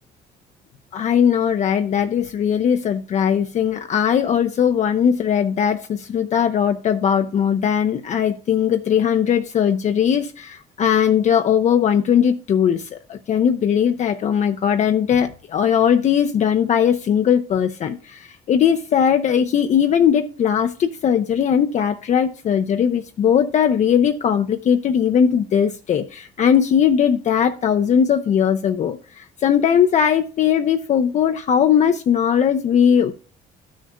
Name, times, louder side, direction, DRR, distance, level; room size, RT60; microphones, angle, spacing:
voice 1, 0.9-33.1, left 8 dB, 45° left, 6 dB, 0.5 m, -19 dB
13.5 x 6.4 x 2.2 m, 0.38 s
cardioid pair, 110°, 17 cm